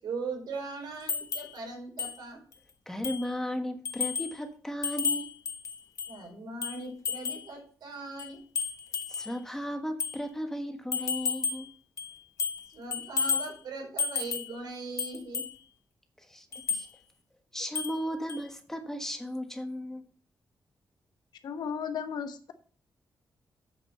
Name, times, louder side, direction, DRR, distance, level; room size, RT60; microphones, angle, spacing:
voice 1, 0.0-2.4 6.1-8.4 12.7-15.4, right 3 dB, 90° right, 1 dB, 4.4 m, -39 dB
sound 1, 1.1-1.5 2.0-2.1 2.5-2.6 3.0-3.3 3.8-4.4 4.8-6.2 6.6-7.5 8.2-9.3 10.0-10.2 10.9-11.7 12.0-12.7 12.9-13.5 14.0-14.5 15.0-15.5 16.5-16.9 17.7-18.0 18.3-18.4, left 6 dB, 50° left, 1.1 m, -32 dB
voice 2, 2.9-5.3 9.1-11.7 16.3-16.9 17.5-20.0, equal, 5° left, 5 dB, 1.3 m, -35 dB
voice 3, 21.4-22.5, left 6 dB, 80° left, 8 dB, 1.2 m, -35 dB
8.2 x 7.1 x 5.6 m, 0.43 s
wide cardioid pair, 175°, 7 cm